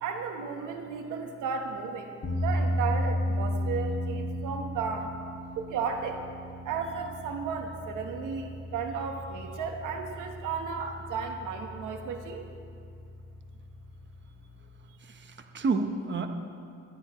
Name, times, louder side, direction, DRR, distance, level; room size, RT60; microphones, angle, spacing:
voice 1, 0.0-5.1 5.6-6.2 6.6-12.5, right 5 dB, 85° right, 4 dB, 1.4 m, -34 dB
sound 1, 2.2-14.7, equal, 45° left, 2.1 m, -35 dB
voice 2, 15.0-16.3, right 4 dB, 40° right, 5 dB, 1.1 m, -30 dB
22.0 x 12.5 x 3.2 m, 2.4 s
cardioid pair, 90°, 30 cm